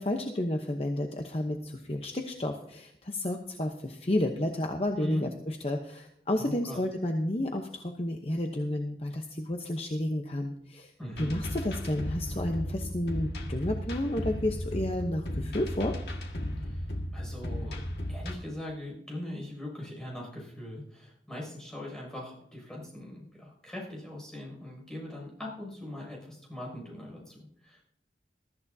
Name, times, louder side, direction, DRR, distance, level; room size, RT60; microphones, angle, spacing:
voice 1, 0.0-10.9 11.2-16.0, left 1 dB, 35° left, 3 dB, 0.9 m, -31 dB
voice 2, 6.4-6.8 11.0-11.3 16.6-16.9 17.1-17.8 18.1-27.8, left 1 dB, 5° left, -3 dB, 6.4 m, -41 dB
sound 1, 11.1-18.3, left 1 dB, 70° left, 1.8 m, -35 dB
21.5 x 13.5 x 2.8 m, 0.73 s
head